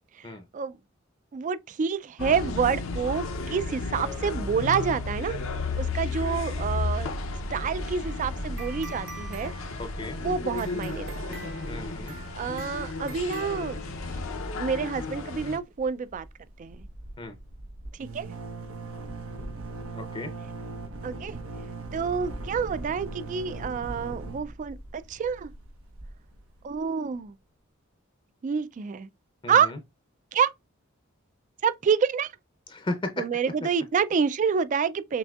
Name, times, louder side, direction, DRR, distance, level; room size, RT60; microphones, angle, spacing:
voice 1, 1.3-5.4 5.8-7.1 7.5-9.5 10.2-11.5 12.3-13.8 14.6-16.3 16.6-16.8 18.0-18.3 21.0-21.4 21.9-25.5 26.6-27.3 28.4-29.1 29.5-29.7 30.3-30.5 31.6-32.3 33.2-35.2, right 6 dB, 40° right, 0.3 m, -28 dB
sound 1, 2.2-15.6, left 3 dB, 70° left, 0.6 m, -33 dB
sound 2, 7.8-14.3, right 3 dB, 60° right, 1.2 m, -47 dB
voice 2, 9.8-10.2 11.7-12.1 17.2-17.4 19.9-20.3 29.4-29.8 32.7-33.2, left 2 dB, 25° left, 0.6 m, -34 dB
sound 3, 15.0-15.5 15.7-15.9 16.1-26.8, right 2 dB, 85° right, 0.9 m, -39 dB
6.0 x 2.6 x 2.3 m
head